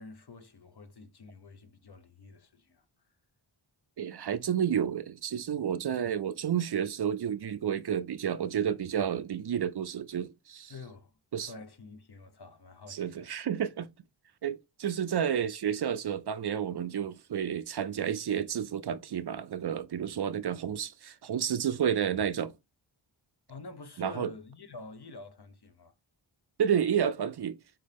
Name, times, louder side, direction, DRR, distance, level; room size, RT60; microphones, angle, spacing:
voice 1, 0.0-2.8 10.7-13.3 23.5-25.9, left 3 dB, 55° left, 0.8 m, -48 dB
voice 2, 4.0-10.7 11.3-11.5 12.9-13.9 14.4-22.5 24.0-24.3 26.6-27.6, right 8 dB, 55° right, 0.5 m, -30 dB
5.3 x 2.8 x 3.4 m
wide cardioid pair, 60°, 48 cm